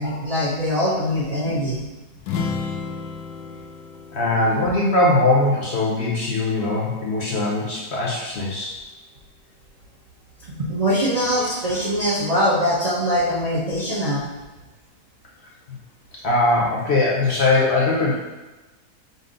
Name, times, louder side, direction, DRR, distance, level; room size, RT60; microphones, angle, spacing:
voice 1, 0.0-1.8 10.5-14.3, equal, 45° right, -7 dB, 0.4 m, -22 dB
sound 1, 2.2-5.9, left 5 dB, 80° left, 1.1 m, -32 dB
voice 2, 4.1-8.7 15.7-15.8 16.2-18.2, left 2 dB, 60° left, -4 dB, 0.8 m, -20 dB
5.4 x 2.1 x 3.8 m, 1.1 s
omnidirectional pair, 1.6 m